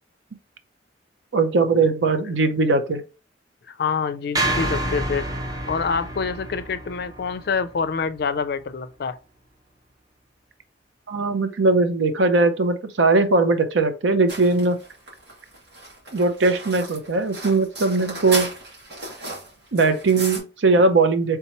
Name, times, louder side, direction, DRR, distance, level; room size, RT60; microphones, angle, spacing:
voice 1, 1.3-3.0 11.1-14.8 16.1-18.5 19.7-21.4, right 3 dB, 85° right, 0.7 m, -20 dB
voice 2, 3.7-5.3 5.7-9.2, left 5 dB, 60° left, 0.4 m, -26 dB
sound 1, 4.3-8.7, right 1 dB, 20° right, 0.6 m, -29 dB
sound 2, 14.3-20.4, right 2 dB, 65° right, 2.0 m, -35 dB
4.4 x 3.5 x 2.9 m
head